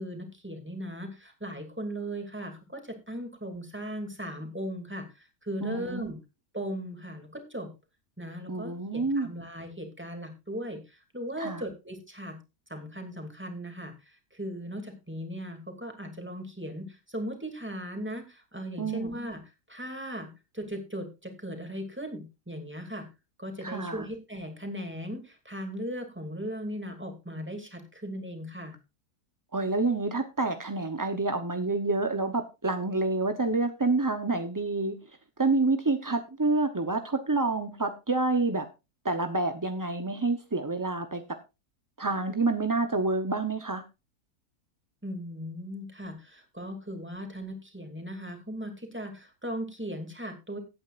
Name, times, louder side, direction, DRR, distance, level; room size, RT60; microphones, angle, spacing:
voice 1, 0.0-6.2 6.5-7.7 8.2-12.4 12.7-19.4 19.7-23.1 23.4-28.8 45.0-50.6, equal, 5° right, 4 dB, 2.3 m, -38 dB
voice 2, 5.6-6.1 8.5-9.4 11.4-11.6 18.8-19.1 23.6-24.1 29.5-35.0 35.4-38.7 39.0-41.2 42.0-43.8, right 3 dB, 25° right, 7 dB, 0.4 m, -28 dB
17.0 x 8.8 x 2.5 m, 0.26 s
omnidirectional pair, 1.7 m